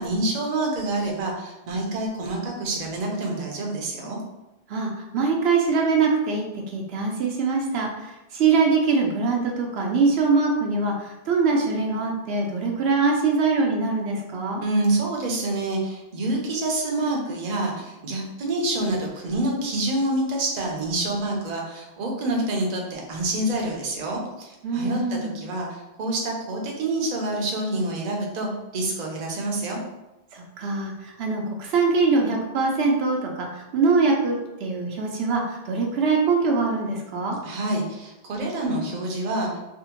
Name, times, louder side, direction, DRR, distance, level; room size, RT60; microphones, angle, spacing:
voice 1, 0.0-4.2 14.6-29.8 37.4-39.5, right 2 dB, 50° right, 0 dB, 0.6 m, -27 dB
voice 2, 4.7-14.6 24.6-25.3 30.3-37.4, right 4 dB, 80° right, 0 dB, 0.8 m, -23 dB
3.4 x 2.1 x 2.9 m, 0.97 s
omnidirectional pair, 1.0 m